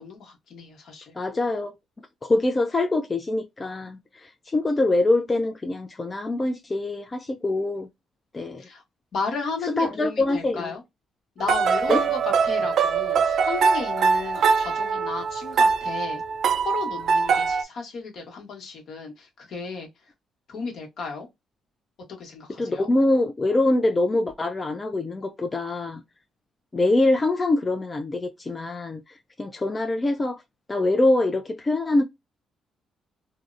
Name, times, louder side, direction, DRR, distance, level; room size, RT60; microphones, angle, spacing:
voice 1, 0.0-1.1 8.6-8.8 9.1-10.8 11.4-16.2 16.6-19.9 20.5-21.3 22.2-22.9, left 4 dB, 65° left, 1.0 m, -34 dB
voice 2, 1.1-1.7 2.3-7.9 8.3-8.6 9.8-10.8 11.9-12.0 22.6-26.0 26.7-29.0 29.4-30.4 30.7-32.0, left 2 dB, 25° left, 0.4 m, -24 dB
sound 1, 11.4-17.6, right 5 dB, 65° right, 0.3 m, -22 dB
2.7 x 2.0 x 2.4 m
cardioid pair, 90°, 0 cm